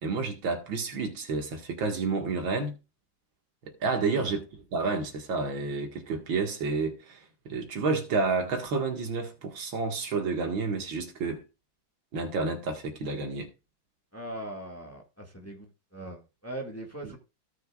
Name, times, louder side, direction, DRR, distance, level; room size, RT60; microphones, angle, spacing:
voice 1, 0.0-2.8 3.6-4.4 4.7-11.4 12.1-13.5, right 4 dB, 90° right, 2.6 m, -30 dB
voice 2, 14.1-17.2, right 1 dB, 10° left, 1.7 m, -40 dB
16.0 x 6.6 x 2.4 m
omnidirectional pair, 2.1 m